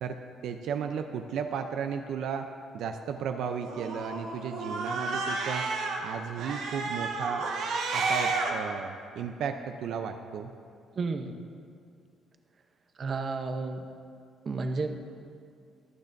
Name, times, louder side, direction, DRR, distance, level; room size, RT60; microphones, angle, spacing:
voice 1, 0.0-2.5 2.7-5.7 6.0-7.5 7.9-10.5, right 7 dB, 65° right, 6 dB, 0.5 m, -34 dB
Cat, 3.7-6.0 6.4-8.5, right 3 dB, 85° right, 1.5 m, -31 dB
voice 2, 10.9-11.3 13.0-13.8 14.4-14.9, right 3 dB, 35° right, 6 dB, 0.7 m, -31 dB
23.5 x 8.8 x 2.6 m, 2.3 s
cardioid pair, 160°, 0 cm